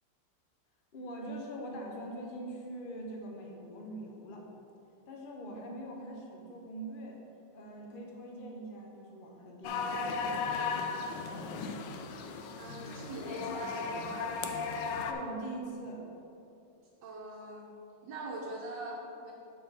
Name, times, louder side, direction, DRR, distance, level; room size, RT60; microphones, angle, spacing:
voice 1, 0.9-4.5 5.1-7.2 7.5-10.2 15.1-16.1, right 1 dB, 40° left, 0 dB, 0.7 m, -43 dB
sound 1, 9.6-15.1, left 5 dB, 75° left, 1.2 m, -36 dB
voice 2, 12.6-14.3 17.0-17.7 18.0-19.3, right 2 dB, 75° right, -5 dB, 1.5 m, -42 dB
6.7 x 4.7 x 5.7 m, 2.9 s
omnidirectional pair, 2.0 m